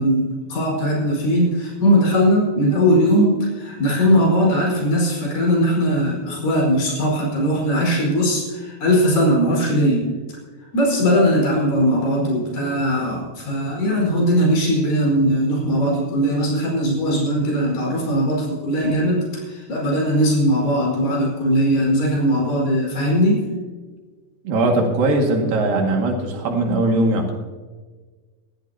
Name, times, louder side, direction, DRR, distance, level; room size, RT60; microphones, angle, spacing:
voice 1, 0.0-10.1 10.7-23.4, equal, 85° left, -3 dB, 6.5 m, -19 dB
voice 2, 24.5-27.3, right 2 dB, 85° right, 0 dB, 3.8 m, -20 dB
21.5 x 14.5 x 2.8 m, 1.4 s
omnidirectional pair, 3.9 m